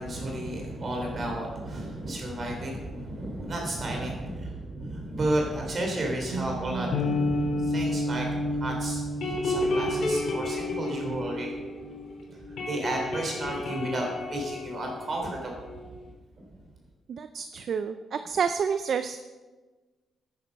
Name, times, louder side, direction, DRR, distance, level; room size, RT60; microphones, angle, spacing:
voice 1, 0.0-11.5 12.3-15.7 16.4-16.5, right 1 dB, 35° right, 1 dB, 3.9 m, -32 dB
sound 1, 6.3-12.1 12.3-15.8, left 1 dB, 65° left, 3.7 m, -30 dB
voice 2, 17.1-19.2, right 6 dB, 50° right, 10 dB, 0.5 m, -29 dB
13.0 x 10.0 x 5.4 m, 1.3 s
wide cardioid pair, 155°, 0 cm